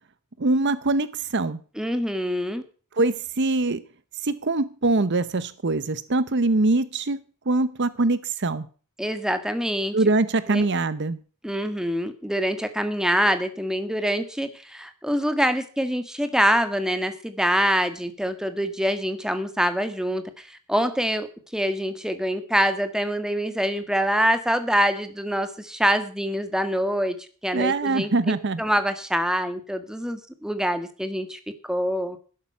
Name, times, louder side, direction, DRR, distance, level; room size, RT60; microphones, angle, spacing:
voice 1, 0.4-1.6 3.0-3.8 4.2-8.7 9.9-11.2 27.5-28.6, right 2 dB, 50° right, 15 dB, 0.8 m, -23 dB
voice 2, 1.7-2.6 9.0-10.0 10.5-10.7 11.4-21.3 21.5-27.2 27.4-31.4 31.7-32.2, equal, 5° right, 9 dB, 1.6 m, -25 dB
12.5 x 11.5 x 5.6 m, 0.39 s
head